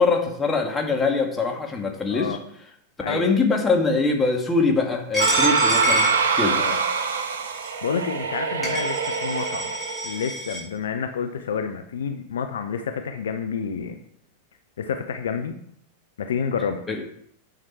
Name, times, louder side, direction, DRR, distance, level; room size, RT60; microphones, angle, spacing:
voice 1, 0.0-2.4 3.1-6.1 6.4-6.6 16.9-17.0, left 4 dB, 15° left, 2 dB, 1.7 m, -23 dB
voice 2, 3.0-3.4 6.5-6.8 7.8-9.7 10.0-14.0 14.8-15.6 16.2-16.8, left 6 dB, 65° left, 7 dB, 0.6 m, -29 dB
Coin (dropping), 5.1-6.9 7.5-7.7 8.3-8.4 8.6-10.6, equal, 5° right, 3.8 m, -28 dB
sound 1, 5.2-10.2, right 5 dB, 60° right, 1.0 m, -24 dB
9.2 x 6.0 x 4.3 m, 0.69 s
figure-of-eight pair, 90°, 0 cm